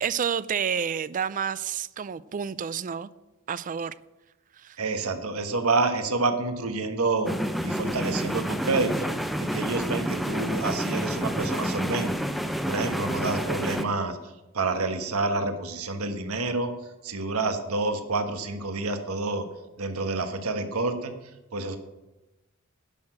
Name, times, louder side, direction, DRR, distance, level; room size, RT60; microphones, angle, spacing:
voice 1, 0.0-3.1 3.5-3.9 4.6-4.8, right 7 dB, 40° right, 0.4 m, -29 dB
voice 2, 4.8-7.3 7.6-9.1 9.4-12.1 12.6-14.2 14.5-16.7 17.0-19.4 19.8-21.1 21.5-21.8, right 3 dB, 85° right, 1.3 m, -28 dB
sound 1, 7.2-13.8, equal, ahead, 0.6 m, -29 dB
10.5 x 6.5 x 8.6 m
head